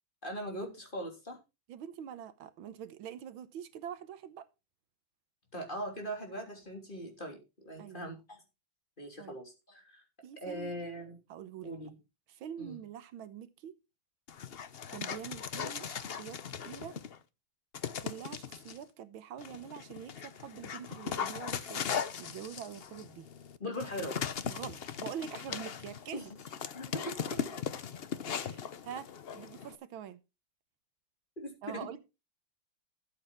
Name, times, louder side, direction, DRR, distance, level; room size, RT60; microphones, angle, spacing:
voice 1, 0.2-1.4 5.5-7.4 7.6-8.4 9.0-10.0 10.4-11.2 11.6-11.9 12.6-12.8 23.6-24.2 26.1-26.4 26.7-27.4 31.4-32.0, equal, 25° left, 3.3 m, -40 dB
voice 2, 1.7-4.5 7.8-8.0 9.2-9.4 10.2-10.7 11.3-11.9 12.3-13.8 14.9-17.0 18.0-21.9 22.2-23.3 24.5-26.3 28.3-29.1 29.3-30.2 31.6-32.0, right 9 dB, 85° right, 1.8 m, -45 dB
Dog, 14.3-17.2 17.7-18.8 19.4-29.8, left 7 dB, 85° left, 0.5 m, -39 dB
13.0 x 7.8 x 4.4 m
omnidirectional pair, 2.2 m